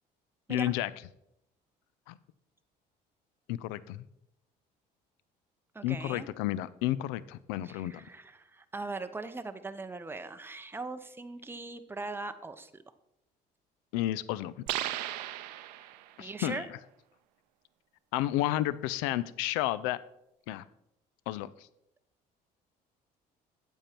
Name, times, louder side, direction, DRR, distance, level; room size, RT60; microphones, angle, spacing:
voice 1, 0.5-0.9 2.1-2.2 3.5-4.0 5.8-8.0 13.9-14.5 16.2-16.6 18.1-20.0 20.5-20.6 21.3-21.5, left 14 dB, 80° left, 19 dB, 0.4 m, -31 dB
voice 2, 5.7-6.3 7.6-12.8 16.2-16.7, right 3 dB, 10° right, 9 dB, 0.7 m, -40 dB
sound 1, 14.7-16.2, right 14 dB, 85° right, 0.5 m, -36 dB
8.8 x 7.2 x 4.4 m, 0.80 s
hypercardioid pair, 60°, 20 cm